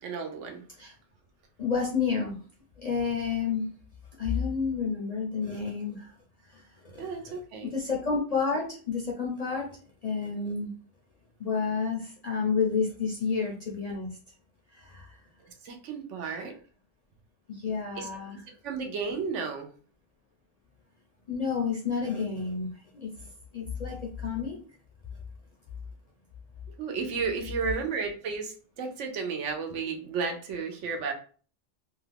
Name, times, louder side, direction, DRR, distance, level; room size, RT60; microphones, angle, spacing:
voice 1, 0.0-0.6 7.0-7.7 15.4-16.5 17.9-18.1 18.6-19.7 26.8-31.1, right 5 dB, 75° right, 4 dB, 1.0 m, -33 dB
voice 2, 1.6-2.4 2.8-3.7 4.2-6.1 6.4-6.6 6.9-7.1 7.6-9.7 10.0-10.7 11.4-14.1 14.7-15.2 16.2-16.5 17.5-18.4 21.3-23.3 23.5-24.6, left 5 dB, 45° left, -1 dB, 0.5 m, -30 dB
2.8 x 2.3 x 3.3 m, 0.40 s
omnidirectional pair, 1.3 m